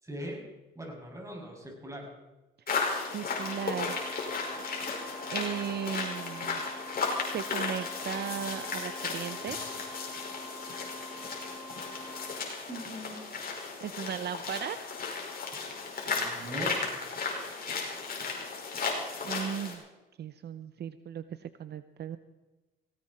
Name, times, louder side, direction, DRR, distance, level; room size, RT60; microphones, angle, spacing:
voice 1, 0.0-0.4 0.8-2.1 9.4-9.6 12.7-13.2 16.1-16.8, right 1 dB, 15° right, 0 dB, 7.0 m, -40 dB
sound 1, 2.7-19.7, left 4 dB, 50° left, 5.3 m, -35 dB
voice 2, 3.1-4.0 5.3-6.6 7.3-9.6 13.8-14.9 19.2-19.8 20.2-22.2, right 8 dB, 55° right, 12 dB, 0.7 m, -36 dB
sound 2, 3.3-12.4, right 2 dB, ahead, 4.2 m, -47 dB
18.5 x 17.5 x 4.4 m, 1.1 s
cardioid pair, 90°, 20 cm